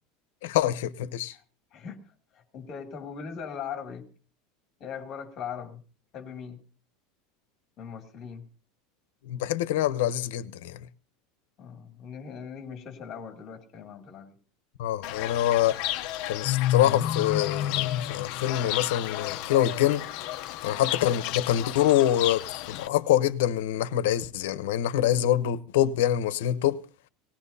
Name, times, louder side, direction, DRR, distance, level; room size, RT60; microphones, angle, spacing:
voice 1, 0.4-1.3 9.2-10.8 14.8-15.8 16.3-20.1 20.6-26.8, left 12 dB, 85° left, 0.9 m, -25 dB
voice 2, 2.3-4.1 4.8-5.8 6.1-6.6 7.8-8.5 11.6-14.3, left 7 dB, 30° left, 2.6 m, -39 dB
Fowl / Bird, 15.0-22.9, left 12 dB, 50° left, 0.7 m, -31 dB
19.0 x 17.5 x 2.7 m
supercardioid pair, 165°, 0 cm